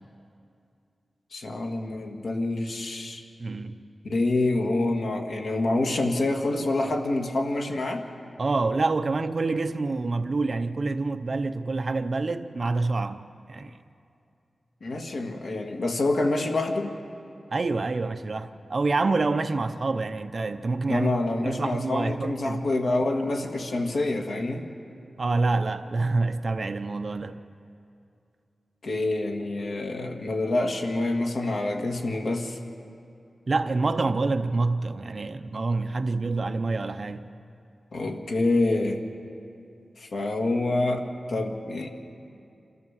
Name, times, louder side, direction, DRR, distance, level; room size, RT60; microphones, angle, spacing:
voice 1, 1.3-3.2 4.0-8.0 14.8-16.9 20.9-24.7 28.8-32.6 37.9-39.0 40.0-41.9, left 2 dB, 70° left, 1.8 m, -27 dB
voice 2, 3.4-3.7 8.4-13.2 13.5-13.8 17.5-21.1 21.4-22.7 25.2-27.4 33.5-37.3, right 3 dB, 45° right, 0.7 m, -27 dB
27.0 x 14.0 x 7.3 m
wide cardioid pair, 135°, 0 cm